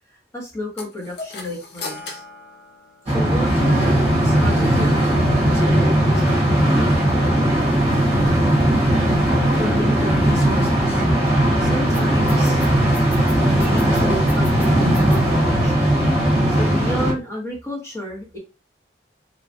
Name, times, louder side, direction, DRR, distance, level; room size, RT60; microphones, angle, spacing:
voice 1, 0.3-2.2 3.1-3.9 4.2-6.9 8.7-9.1 9.5-11.0 11.6-12.6 13.6-16.0 16.5-18.4, left 1 dB, 15° left, -3 dB, 0.9 m, -31 dB
sound 1, 0.8-3.5, left 3 dB, 60° left, 0.7 m, -36 dB
sound 2, 3.1-17.1, right 1 dB, 35° right, 0.9 m, -18 dB
sound 3, 4.4-4.7 4.9-5.0 5.3-5.4 5.6-5.7 5.9-15.3, right 1 dB, 10° right, 0.3 m, -30 dB
3.2 x 2.3 x 2.5 m, 0.29 s
head